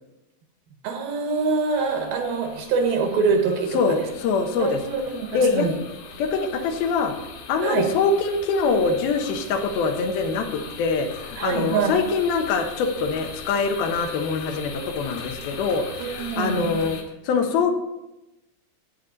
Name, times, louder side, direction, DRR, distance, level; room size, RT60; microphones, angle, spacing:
voice 1, 0.8-4.0 4.6-5.8 7.6-7.9 11.4-11.9 16.0-16.7, right 4 dB, 75° right, 4 dB, 3.2 m, -24 dB
sound 1, 1.3-17.0, left 5 dB, 60° left, 2.7 m, -40 dB
voice 2, 3.7-4.8 5.3-5.7 6.2-7.1 7.5-17.0 17.2-17.7, left 4 dB, 80° left, 5 dB, 2.9 m, -24 dB
13.5 x 8.4 x 4.0 m, 0.96 s
omnidirectional pair, 4.3 m